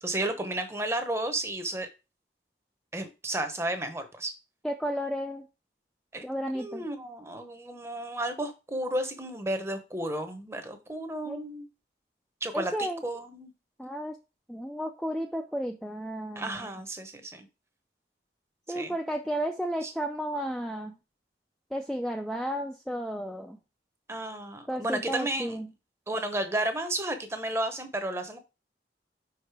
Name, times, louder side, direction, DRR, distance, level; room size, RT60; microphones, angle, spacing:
voice 1, 0.0-1.9 2.9-4.3 6.1-6.2 6.5-11.7 12.4-12.7 13.0-13.5 16.4-17.5 18.7-18.9 19.8-19.9 24.1-25.6 26.1-28.4, right 1 dB, 15° right, 7 dB, 0.9 m, -32 dB
voice 2, 4.6-5.5 6.2-6.9 11.3-11.4 12.5-13.0 13.8-14.2 14.5-16.8 18.7-20.9 21.7-23.6 24.7-25.7, equal, ahead, 2 dB, 0.4 m, -33 dB
5.4 x 4.9 x 4.7 m, 0.29 s
head